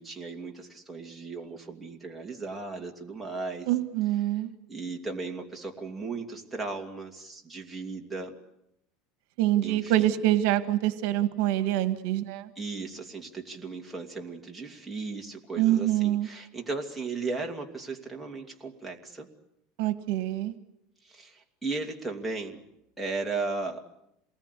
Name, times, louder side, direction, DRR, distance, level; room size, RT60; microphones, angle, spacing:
voice 1, 0.0-3.7 4.3-4.4 4.7-8.4 9.6-10.2 12.6-19.3 21.0-22.6 23.0-23.8, right 3 dB, 5° right, -1 dB, 2.6 m, -36 dB
voice 2, 3.7-4.5 9.4-12.5 15.6-16.3 19.8-20.5, right 14 dB, 65° right, 10 dB, 1.6 m, -25 dB
27.5 x 20.0 x 8.3 m, 0.81 s
supercardioid pair, 165°, 0 cm